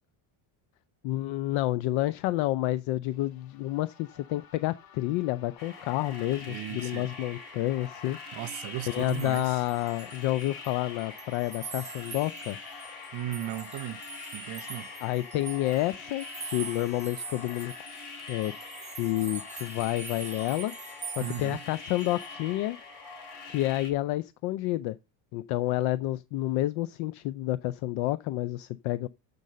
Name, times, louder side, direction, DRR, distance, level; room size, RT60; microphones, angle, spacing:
voice 1, 1.0-8.2 8.9-12.6 15.0-17.7 18.3-18.5 19.0-20.7 21.2-22.8 23.4-25.0 25.3-29.1, left 16 dB, 70° left, 0.6 m, -29 dB
sound 1, 3.1-20.5, left 8 dB, 50° left, 1.1 m, -54 dB
sound 2, 5.6-23.9, left 3 dB, 85° left, 3.2 m, -44 dB
voice 2, 6.5-7.1 8.3-9.6 13.1-14.0 14.3-14.9 21.2-21.6, right 13 dB, 55° right, 0.8 m, -36 dB
sound 3, 8.9-10.7 11.0-22.3, right 5 dB, 15° right, 0.7 m, -44 dB
7.4 x 5.4 x 6.7 m
cardioid pair, 115°, 48 cm